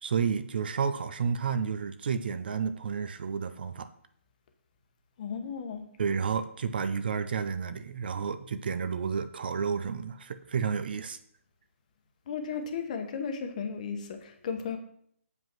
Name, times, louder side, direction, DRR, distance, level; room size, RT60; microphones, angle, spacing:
voice 1, 0.0-3.9 6.0-11.2, right 6 dB, 45° right, 12 dB, 0.5 m, -31 dB
voice 2, 5.2-5.9 12.3-14.8, left 6 dB, 30° left, 6 dB, 1.1 m, -35 dB
7.4 x 5.5 x 6.0 m, 0.67 s
hypercardioid pair, 165°, 7 cm